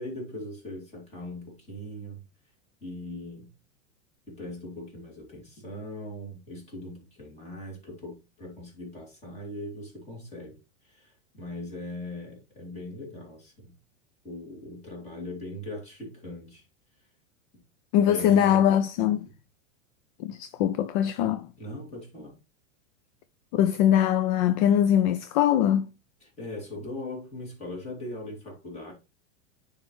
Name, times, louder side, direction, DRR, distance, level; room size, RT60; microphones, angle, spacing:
voice 1, 0.0-2.2 2.8-3.5 4.3-10.6 10.8-13.7 14.2-16.6 17.5-17.6 18.0-18.8 21.6-22.4 26.2-28.9, left 1 dB, 20° left, 3.0 m, -40 dB
voice 2, 17.9-19.3 20.2-21.5 23.5-25.9, left 10 dB, 45° left, 0.5 m, -22 dB
9.4 x 3.5 x 3.2 m
supercardioid pair, 140°, 34 cm